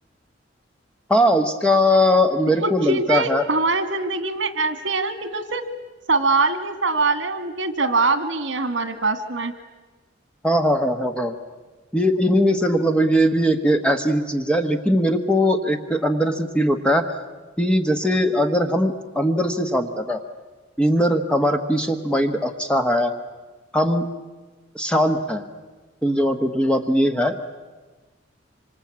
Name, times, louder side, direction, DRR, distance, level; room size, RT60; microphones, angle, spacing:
voice 1, 1.1-3.5 10.4-11.3 11.9-17.1 17.6-20.2 20.8-23.1 23.7-24.1 24.7-25.4 26.0-27.4, equal, 5° left, 6 dB, 1.2 m, -20 dB
voice 2, 2.6-5.6 6.1-9.5, right 3 dB, 70° right, 10 dB, 2.1 m, -23 dB
26.5 x 25.5 x 8.7 m, 1.3 s
head